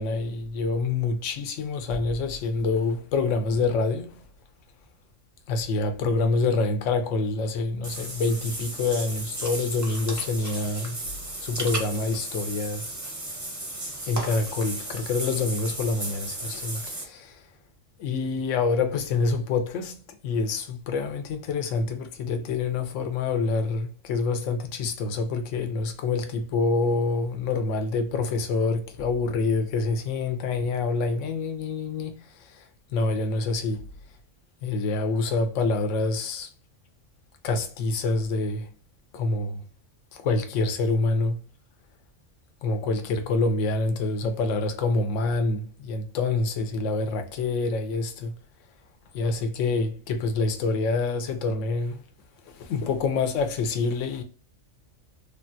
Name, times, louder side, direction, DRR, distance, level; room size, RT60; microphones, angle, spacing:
voice 1, 0.0-4.2 5.5-11.0 11.4-12.9 14.1-17.4 18.0-32.6 32.9-33.9 34.6-36.5 37.4-38.7 39.1-39.6 40.1-41.4 42.6-48.3 49.1-52.0 52.5-54.2, left 3 dB, 80° left, 1.0 m, -26 dB
Water / Bathtub (filling or washing), 7.8-17.0, right 2 dB, 20° right, 0.4 m, -35 dB
3.4 x 2.2 x 2.5 m
omnidirectional pair, 1.3 m